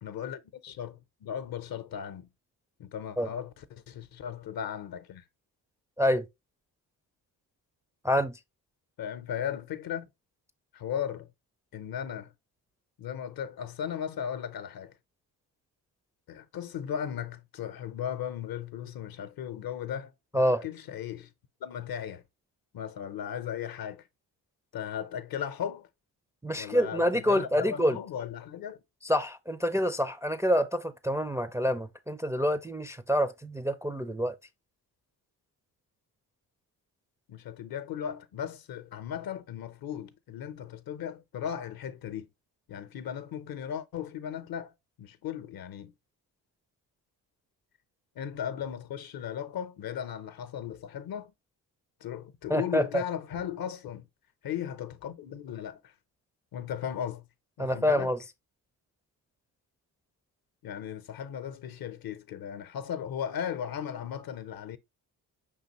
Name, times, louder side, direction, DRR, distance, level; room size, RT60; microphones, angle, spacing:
voice 1, 0.0-2.3 2.8-5.3 9.0-10.1 10.7-11.3 11.7-12.3 13.0-15.0 16.3-21.3 21.6-22.2 22.7-24.1 24.7-25.9 26.6-28.8 37.3-42.3 42.7-44.7 45.0-45.9 48.2-51.3 52.0-54.1 54.4-55.9 56.5-57.2 57.6-58.1 60.6-64.8, left 9 dB, 60° left, 0.7 m, -36 dB
voice 2, 8.0-8.4 20.3-20.6 26.4-28.0 29.1-34.3 52.5-53.0 57.6-58.2, equal, 10° right, 0.4 m, -27 dB
5.2 x 3.5 x 2.9 m
supercardioid pair, 60°, 40 cm